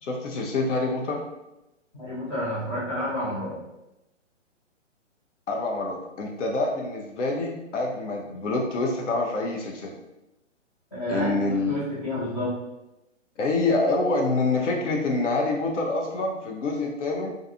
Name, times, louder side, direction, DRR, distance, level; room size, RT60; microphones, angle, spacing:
voice 1, 0.0-1.2 5.5-9.9 11.1-11.8 13.4-17.3, left 2 dB, 70° left, 0 dB, 0.6 m, -26 dB
voice 2, 1.9-3.6 10.9-12.6, left 1 dB, 25° left, -9 dB, 0.3 m, -30 dB
2.5 x 2.3 x 2.6 m, 0.94 s
hypercardioid pair, 140°, 37 cm